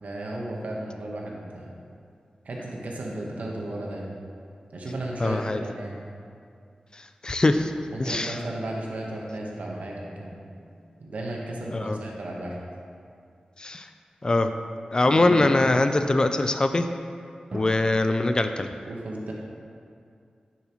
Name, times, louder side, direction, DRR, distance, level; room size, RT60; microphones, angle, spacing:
voice 1, 0.0-1.7 2.4-4.1 4.7-6.0 7.9-10.3 11.0-12.6 15.0-15.9 18.8-19.3, right 1 dB, 85° right, -2 dB, 1.2 m, -34 dB
voice 2, 5.2-5.6 6.9-7.7 8.0-8.4 11.7-12.0 13.6-13.9 14.2-14.5 14.9-16.9 17.5-18.7, left 2 dB, 35° left, 8 dB, 0.4 m, -22 dB
sound 1, 9.7-12.6 17.5-17.8, right 2 dB, 55° right, 0.7 m, -45 dB
9.5 x 7.2 x 3.0 m, 2.3 s
wide cardioid pair, 100°, 3 cm